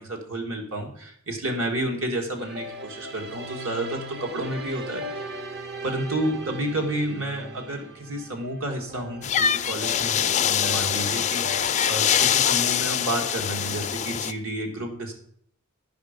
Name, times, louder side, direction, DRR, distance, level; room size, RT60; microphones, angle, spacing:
voice 1, 0.0-5.4 5.8-15.2, right 1 dB, 75° right, 1 dB, 1.7 m, -31 dB
sound 1, 2.4-11.6, right 1 dB, 50° right, 0.9 m, -38 dB
sound 2, 9.2-14.3, left 9 dB, 35° left, 0.4 m, -24 dB
10.5 x 5.3 x 5.0 m, 0.63 s
head